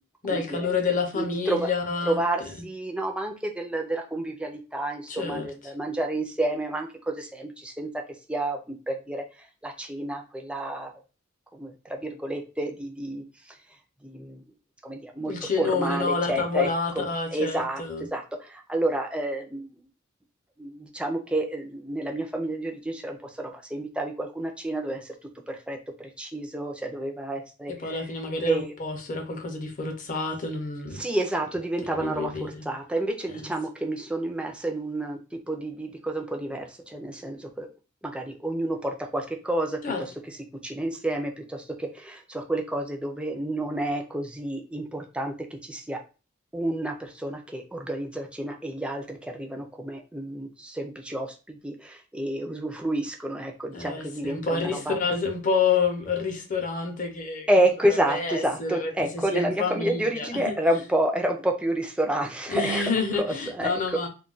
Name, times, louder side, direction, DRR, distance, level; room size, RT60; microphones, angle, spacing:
voice 1, 0.2-2.2 5.1-5.5 15.3-18.0 27.8-31.0 31.9-32.6 33.3-33.5 39.8-40.0 53.7-57.5 57.9-60.5 62.5-64.1, left 4 dB, 40° left, 3 dB, 0.7 m, -28 dB
voice 2, 1.2-1.7 2.1-6.9 7.2-7.5 7.8-7.9 8.3-8.6 8.9-9.2 9.6-10.9 11.6-11.7 12.0-13.2 14.1-14.4 14.8-16.7 17.3-17.8 18.1-18.2 18.7-19.6 20.6-23.2 23.7-25.0 25.7-25.8 26.2-27.7 28.5-28.7 31.0-32.3 32.7-35.2 35.5-36.6 36.9-37.7 38.1-39.7 40.6-41.3 42.1-45.3 45.7-46.0 46.5-46.9 47.2-50.5 50.8-51.3 51.6-51.7 52.1-55.0 57.5-62.8 63.2-63.7, right 1 dB, 5° right, 2 dB, 0.4 m, -29 dB
2.3 x 2.2 x 3.8 m, 0.32 s
head